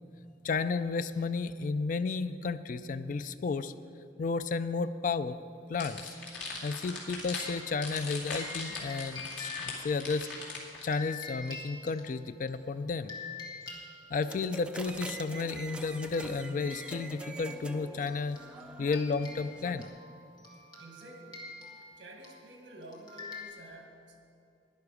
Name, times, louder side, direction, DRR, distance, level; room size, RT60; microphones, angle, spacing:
voice 1, 0.4-3.7 4.2-5.4 5.7-6.1 6.6-10.3 10.8-13.2 14.1-18.4 18.8-19.9, left 4 dB, 45° left, 13 dB, 0.3 m, -32 dB
sound 1, 5.8-10.9, left 4 dB, 85° left, 2.5 m, -39 dB
sound 2, 6.3-12.5 13.1-14.8 15.3-15.4 15.7-23.4, left 4 dB, 25° left, 1.7 m, -47 dB
sound 3, 14.3-19.9, right 2 dB, 5° right, 0.5 m, -44 dB
voice 2, 20.8-21.6 22.0-24.2, right 1 dB, 70° right, 3 dB, 1.7 m, -50 dB
11.5 x 10.5 x 4.9 m, 2.6 s
head